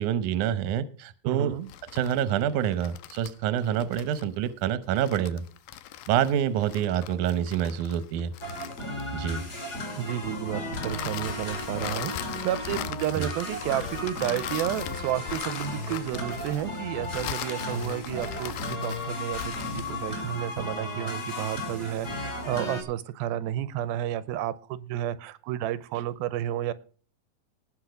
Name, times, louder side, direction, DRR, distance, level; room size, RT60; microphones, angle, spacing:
voice 1, 0.0-1.6 1.9-5.4 6.1-8.3 9.1-9.4 13.2-13.3, right 10 dB, 70° right, 14 dB, 2.1 m, -27 dB
voice 2, 1.3-1.7 10.0-26.7, right 12 dB, 90° right, 16 dB, 2.6 m, -31 dB
sound 1, 1.6-9.4 10.7-20.0, left 12 dB, 75° left, 2.2 m, -40 dB
sound 2, 8.4-22.8, left 1 dB, 25° left, 2.1 m, -35 dB
18.5 x 6.3 x 4.9 m, 0.40 s
omnidirectional pair, 4.2 m